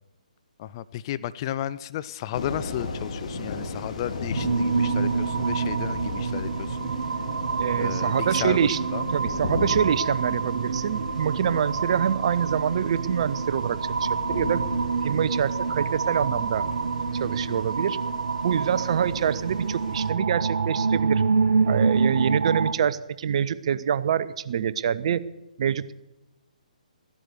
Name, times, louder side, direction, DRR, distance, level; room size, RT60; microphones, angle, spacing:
voice 1, 0.6-6.9 7.8-9.0, left 12 dB, 35° left, 16 dB, 0.5 m, -33 dB
sound 1, 2.3-20.1, left 3 dB, 55° left, 2.9 m, -36 dB
sound 2, 4.3-22.7, right 5 dB, 65° right, 1.2 m, -27 dB
voice 2, 7.5-8.8 9.1-14.6 15.0-16.7 17.2-18.0 18.4-21.2 21.7-25.2 25.6-25.9, right 8 dB, 45° right, 15 dB, 0.7 m, -26 dB
15.5 x 11.0 x 6.7 m, 1.0 s
figure-of-eight pair, 140°, 4 cm